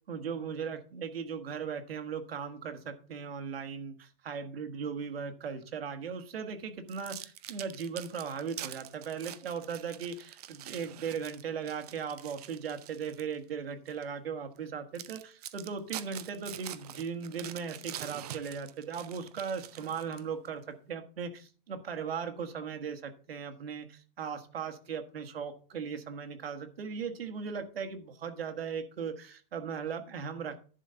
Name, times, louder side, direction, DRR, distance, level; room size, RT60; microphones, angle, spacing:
voice 1, 0.1-30.5, right 6 dB, 85° right, 7 dB, 1.6 m, -38 dB
sound 1, 6.9-13.3 13.9-14.0 14.6-14.7 14.9-20.5, right 12 dB, 40° right, 0.6 m, -45 dB
11.0 x 4.0 x 6.8 m, 0.39 s
hypercardioid pair, 160°, 29 cm